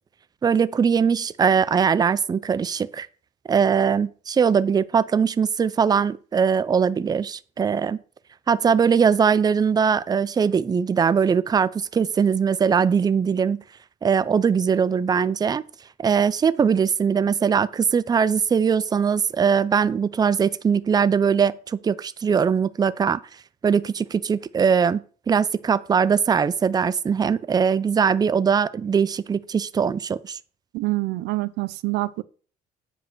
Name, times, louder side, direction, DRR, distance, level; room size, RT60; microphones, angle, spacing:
voice 1, 0.4-3.1 3.5-8.0 8.5-13.6 14.0-15.6 16.0-23.2 23.6-30.4, right 6 dB, 25° right, 0.5 m, -21 dB
voice 2, 30.7-32.2, right 20 dB, 85° right, 0.5 m, -26 dB
8.1 x 5.0 x 6.0 m
cardioid pair, 110°, 17 cm